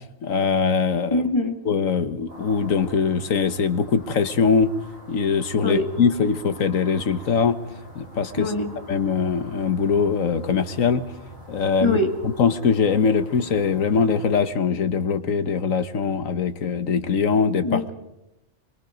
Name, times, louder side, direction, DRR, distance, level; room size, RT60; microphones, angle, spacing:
voice 1, 0.2-1.2 1.7-4.7 5.1-7.6 7.9-8.5 8.9-11.0 11.5-12.0 12.4-17.8, left 5 dB, 80° left, 11 dB, 1.6 m, -22 dB
voice 2, 1.1-1.6 5.6-5.9 8.4-8.7 11.8-12.1 17.6-17.9, left 2 dB, 20° left, 3 dB, 2.4 m, -23 dB
sound 1, 2.3-14.4, right 1 dB, 30° right, 7.9 m, -45 dB
24.5 x 24.0 x 5.3 m, 0.89 s
omnidirectional pair, 1.4 m